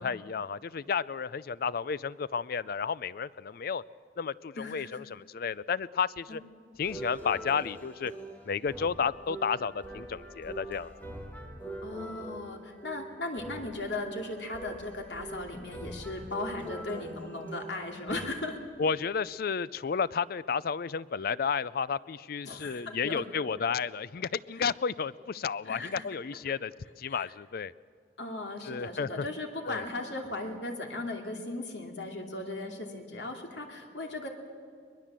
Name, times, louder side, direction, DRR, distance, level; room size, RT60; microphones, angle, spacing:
voice 1, 0.0-3.8 4.2-6.4 6.8-8.1 8.5-10.9 18.8-26.7 27.0-27.7 28.7-29.2 29.7-29.8, left 6 dB, 55° left, 19 dB, 0.4 m, -32 dB
voice 2, 4.6-5.0 6.3-6.4 11.8-18.6 22.4-23.2 25.6-26.0 26.5-26.6 27.1-27.3 28.2-34.3, left 2 dB, 85° left, 3 dB, 2.6 m, -37 dB
sound 1, 6.8-18.3, right 1 dB, 10° left, 2.3 m, -43 dB
22.0 x 21.0 x 7.5 m, 2.2 s
head